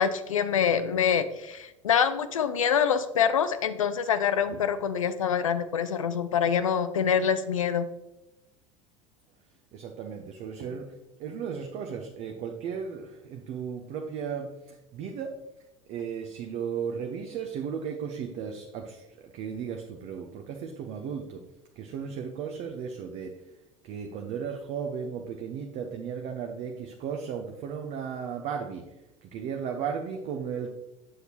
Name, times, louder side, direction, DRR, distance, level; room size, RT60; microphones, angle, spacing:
voice 1, 0.0-7.9, left 7 dB, 75° left, 12 dB, 0.5 m, -25 dB
voice 2, 9.7-15.4 15.9-21.5 21.8-23.4 23.8-28.9 29.2-30.7, right 7 dB, 45° right, 3 dB, 0.7 m, -35 dB
7.9 x 6.6 x 2.9 m, 0.96 s
figure-of-eight pair, 75°, 17 cm